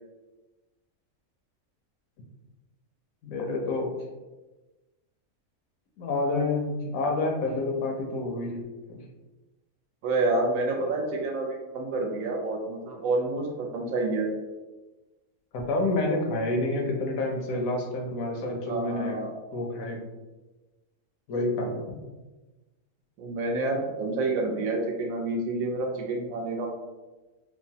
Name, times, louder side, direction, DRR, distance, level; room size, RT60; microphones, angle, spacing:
voice 1, 3.2-3.9 6.0-8.6 8.9-9.0 15.5-19.2 19.5-20.0 21.3-22.0, left 2 dB, 80° left, 1 dB, 1.0 m, -28 dB
voice 2, 10.0-14.3 18.7-19.4 23.2-26.7, right 2 dB, 80° right, 0 dB, 1.0 m, -28 dB
2.9 x 2.0 x 2.7 m, 1.2 s
omnidirectional pair, 1.4 m